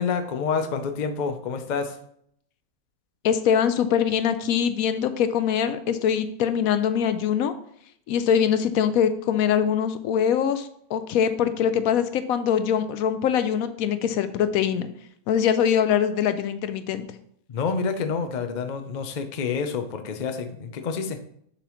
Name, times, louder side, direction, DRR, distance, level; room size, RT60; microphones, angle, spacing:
voice 1, 0.0-2.0 17.5-21.2, left 5 dB, 50° left, 7 dB, 0.5 m, -28 dB
voice 2, 3.2-7.5 8.1-14.9 15.3-17.1, left 8 dB, 75° left, 11 dB, 1.0 m, -23 dB
7.0 x 5.5 x 3.0 m, 0.67 s
omnidirectional pair, 1.6 m